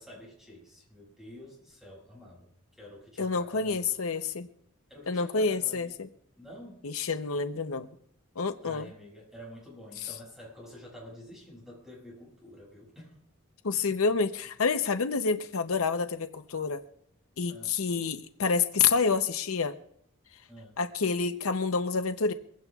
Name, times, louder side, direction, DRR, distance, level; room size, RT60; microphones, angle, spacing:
voice 1, 0.0-3.9 4.9-5.9 6.3-6.8 8.6-13.2 13.7-14.0 17.5-17.8 20.5-20.8, equal, ahead, -3 dB, 6.6 m, -49 dB
voice 2, 3.2-4.5 5.1-6.1 6.8-7.9 8.4-8.9 13.6-16.8 17.4-19.8 20.8-22.3, left 5 dB, 75° left, 9 dB, 0.7 m, -28 dB
23.0 x 16.0 x 2.4 m, 0.69 s
head